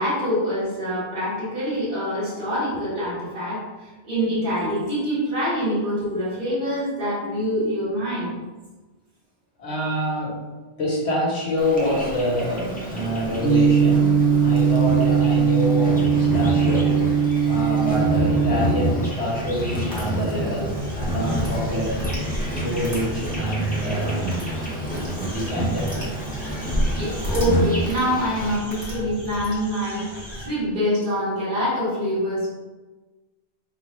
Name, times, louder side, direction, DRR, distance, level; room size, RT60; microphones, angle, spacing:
voice 1, 0.0-3.6 4.0-8.3 26.9-30.0 30.4-32.5, equal, 50° right, -11 dB, 1.8 m, -25 dB
voice 2, 9.6-10.4 10.8-17.0 17.4-22.0 22.5-24.2 25.1-26.0, equal, 85° left, -4 dB, 1.4 m, -26 dB
Insect, 11.6-28.6, equal, 10° left, 0.5 m, -29 dB
sound 1, 13.4-18.6, right 6 dB, 60° left, 1.2 m, -19 dB
sound 2, 19.9-20.0 20.5-30.5, equal, 25° right, 1.3 m, -32 dB
3.8 x 2.4 x 4.3 m, 1.2 s
omnidirectional pair, 1.1 m